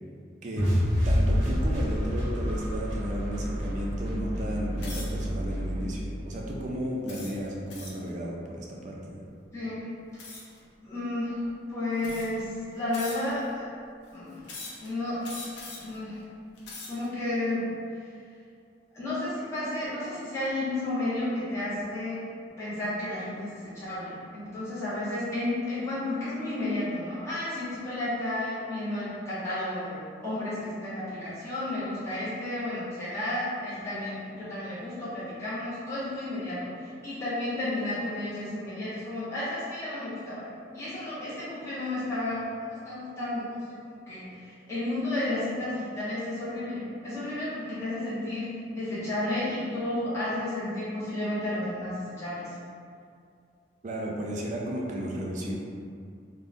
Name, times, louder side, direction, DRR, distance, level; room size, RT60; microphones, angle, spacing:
sound 1, 0.6-6.7, equal, 85° right, 0.7 m, -28 dB
voice 1, 1.0-9.2 53.8-55.5, equal, 40° right, -2 dB, 0.4 m, -34 dB
sound 2, 4.8-5.2 5.9-6.1 7.1-8.1 10.2-10.6 11.4-11.5 12.0-12.5 12.9-13.5 14.4-14.9 15.2-16.0 16.5-17.1, left 3 dB, 70° left, 0.6 m, -42 dB
voice 2, 9.5-10.3 10.8-13.6 14.1-14.4 14.8-15.4 15.8-16.2 16.9-17.7 18.0-18.1 18.9-22.2 22.6-30.0 30.2-40.5 40.7-52.4, left 1 dB, 15° left, -12 dB, 0.6 m, -32 dB
3.4 x 2.1 x 2.5 m, 2.3 s
head